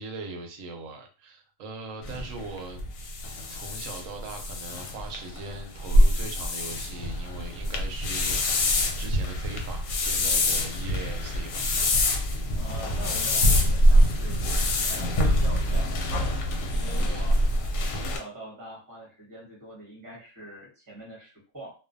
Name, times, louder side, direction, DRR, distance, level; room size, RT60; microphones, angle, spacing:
voice 1, 0.0-2.9 3.5-11.6 17.0-17.3, right 2 dB, 80° right, 4 dB, 1.0 m, -40 dB
sound 1, 2.0-18.2, left 1 dB, 90° left, 1.0 m, -25 dB
sound 2, 10.4-17.5, left 1 dB, 50° left, 0.6 m, -48 dB
voice 2, 12.5-14.5 14.9-16.4 16.7-17.4 17.9-21.7, right 1 dB, 20° right, -3 dB, 0.8 m, -43 dB
2.4 x 2.1 x 2.5 m, 0.36 s
omnidirectional pair, 1.4 m